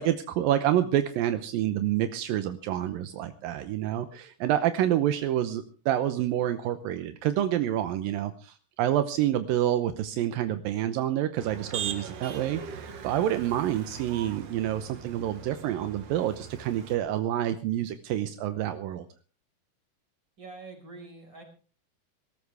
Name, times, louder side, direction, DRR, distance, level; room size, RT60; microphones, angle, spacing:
voice 1, 0.0-19.1, right 12 dB, 80° right, 9 dB, 2.6 m, -28 dB
Motor vehicle (road), 11.4-17.0, right 7 dB, 55° right, 2.2 m, -40 dB
voice 2, 20.4-21.4, right 3 dB, 30° right, 3 dB, 5.8 m, -45 dB
23.0 x 13.5 x 3.5 m, 0.38 s
omnidirectional pair, 4.0 m